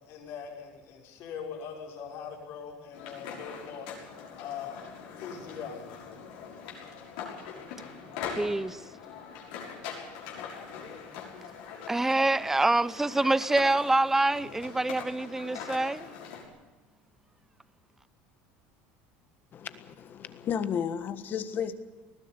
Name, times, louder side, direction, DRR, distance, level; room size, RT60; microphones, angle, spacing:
voice 1, 0.0-4.9 5.2-5.8, left 7 dB, 60° left, 0 dB, 6.1 m, -41 dB
sound 1, 2.9-16.4, left 6 dB, 85° left, 6.3 m, -42 dB
voice 2, 8.4-8.8 11.9-16.1, right 2 dB, 5° right, 17 dB, 0.6 m, -26 dB
voice 3, 19.5-21.7, left 8 dB, 40° left, 12 dB, 1.6 m, -33 dB
20.0 x 14.5 x 9.8 m, 1.2 s
supercardioid pair, 125°, 5 cm